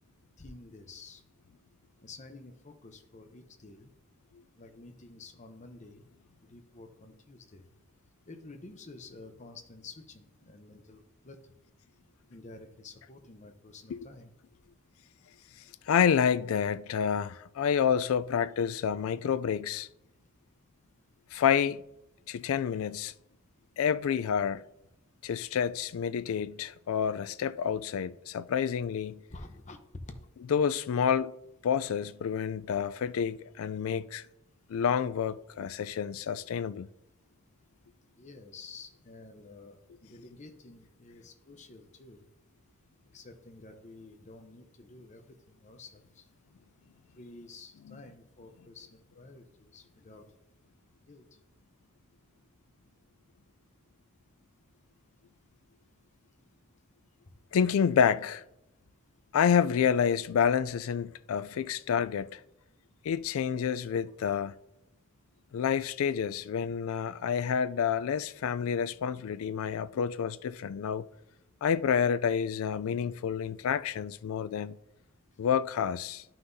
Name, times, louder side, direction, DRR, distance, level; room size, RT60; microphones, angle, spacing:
voice 1, 0.4-1.2 2.0-3.9 4.6-6.0 6.4-7.7 8.3-11.5 12.3-14.3 29.3-30.2 38.2-42.3 43.1-46.3 47.2-50.4 51.1-51.3, left 3 dB, 35° left, 0.8 m, -50 dB
voice 2, 15.9-19.9 21.3-21.8 22.3-23.1 23.8-24.6 25.2-29.2 30.5-31.3 31.6-34.3 34.7-36.9 47.9-48.0 57.5-58.4 59.3-62.4 63.0-64.5 65.5-71.0 71.6-74.8 75.4-76.2, left 7 dB, 65° left, 0.3 m, -28 dB
11.5 x 5.8 x 2.7 m
head